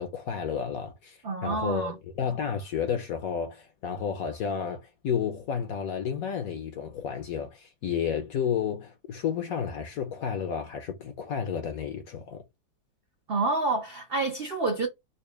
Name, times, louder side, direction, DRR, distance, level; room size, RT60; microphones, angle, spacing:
voice 1, 0.0-12.4, left 7 dB, 70° left, 0.9 m, -31 dB
voice 2, 1.2-1.9 13.3-14.9, right 3 dB, 85° right, 0.5 m, -28 dB
4.1 x 2.1 x 3.2 m
omnidirectional pair, 2.0 m